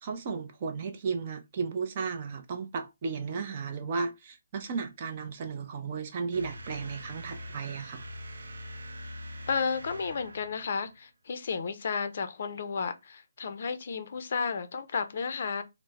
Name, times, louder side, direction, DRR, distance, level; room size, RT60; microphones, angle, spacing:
voice 1, 0.0-8.0, right 5 dB, 30° right, 0.4 m, -34 dB
sound 1, 6.3-11.0, equal, 80° right, 0.5 m, -43 dB
voice 2, 9.5-15.6, left 5 dB, 50° left, 0.4 m, -32 dB
3.1 x 2.0 x 3.3 m
hypercardioid pair, 170°, 0 cm